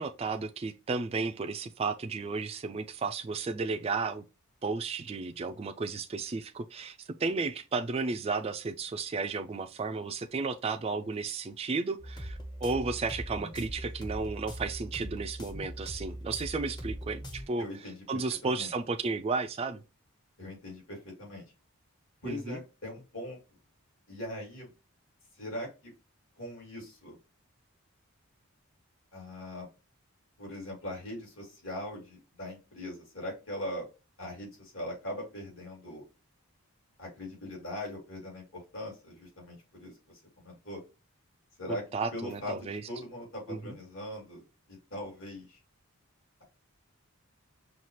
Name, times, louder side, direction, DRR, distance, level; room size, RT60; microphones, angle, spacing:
voice 1, 0.0-4.2 4.6-17.7 18.1-19.8 22.2-22.6 41.7-42.8 43.5-43.7, right 4 dB, 25° right, 0.3 m, -33 dB
sound 1, 12.0-17.5, equal, 20° left, 0.6 m, -41 dB
voice 2, 17.6-18.7 20.4-21.5 22.2-23.4 24.1-24.7 25.4-25.9 26.4-27.2 29.1-29.7 30.4-33.9 34.2-36.0 37.0-40.8 41.6-41.8 42.1-44.4 44.7-45.6, left 1 dB, 70° left, 2.4 m, -41 dB
5.6 x 2.4 x 3.1 m
head